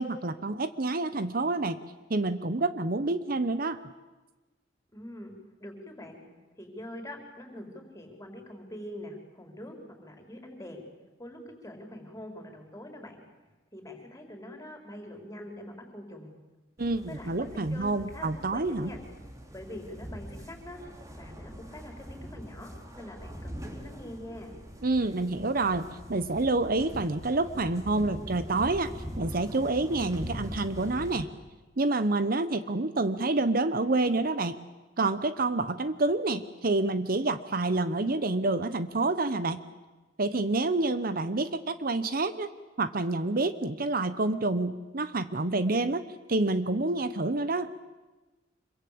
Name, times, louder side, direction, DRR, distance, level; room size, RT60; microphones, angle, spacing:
voice 1, 0.0-1.8 2.1-3.8 16.8-18.9 24.8-31.3 31.8-34.6 35.0-39.6 40.2-42.5 42.8-47.7, right 2 dB, 50° right, 12 dB, 0.9 m, -28 dB
voice 2, 4.9-5.3 5.6-6.2 6.5-10.8 11.2-13.2 13.7-16.3 17.1-19.0 19.5-20.8 21.1-22.7 22.9-24.5, left 1 dB, 15° left, 3 dB, 4.8 m, -44 dB
sound 1, 16.8-31.2, equal, 20° right, 2.9 m, -43 dB
26.5 x 22.5 x 8.7 m, 1.2 s
head